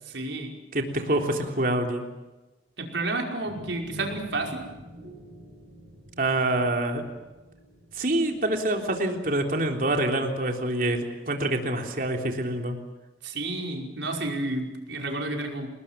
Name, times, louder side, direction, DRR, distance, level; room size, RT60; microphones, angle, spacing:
voice 1, 0.1-0.5 2.8-4.7 13.2-15.7, right 2 dB, 90° right, 1 dB, 5.4 m, -31 dB
voice 2, 0.7-2.1 6.2-7.0 7.9-12.8, right 1 dB, 50° right, 3 dB, 3.6 m, -26 dB
sound 1, 3.4-10.0, right 1 dB, 70° right, 7.5 m, -47 dB
29.0 x 20.0 x 7.6 m, 1.1 s
head